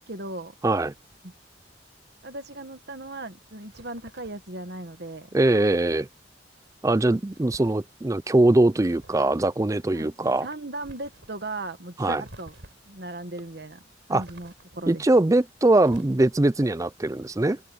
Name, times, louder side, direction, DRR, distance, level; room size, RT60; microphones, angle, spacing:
voice 1, 0.1-0.5 1.2-1.3 2.2-5.3 9.9-10.1 10.4-12.5 12.9-13.8 14.1-15.0, right 2 dB, 55° right, 1.7 m, -37 dB
voice 2, 0.6-0.9 5.3-6.1 6.8-10.5 12.0-12.2 14.1-14.2 14.9-17.6, right 2 dB, 15° right, 0.4 m, -21 dB
sound 1, 3.7-4.5 5.6-6.1 7.3-7.8 8.7-9.6 10.8-11.3 12.2-13.0 14.2-14.9 15.8-16.5, right 1 dB, 75° right, 4.1 m, -50 dB
head